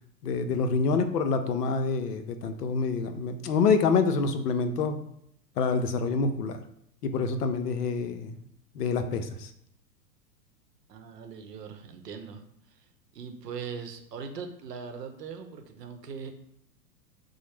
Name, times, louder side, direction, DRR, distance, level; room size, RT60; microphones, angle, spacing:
voice 1, 0.2-5.0 5.6-6.6 7.0-8.4 8.7-9.5, left 4 dB, 70° left, 8 dB, 0.6 m, -27 dB
voice 2, 10.9-12.9 13.1-16.3, right 6 dB, 75° right, 6 dB, 0.7 m, -40 dB
4.9 x 2.0 x 3.2 m, 0.71 s
figure-of-eight pair, 100°, 49 cm